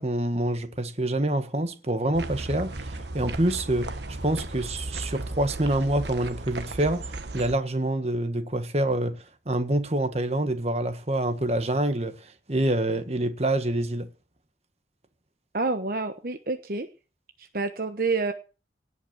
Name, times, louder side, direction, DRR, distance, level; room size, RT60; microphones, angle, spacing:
voice 1, 0.0-3.9 4.2-14.1, right 1 dB, 35° right, 1.4 m, -26 dB
sound 1, 2.1-7.5, right 2 dB, 75° right, 1.4 m, -35 dB
voice 2, 15.5-16.9 17.4-18.3, right 3 dB, 50° right, 1.1 m, -28 dB
18.0 x 6.0 x 7.9 m
head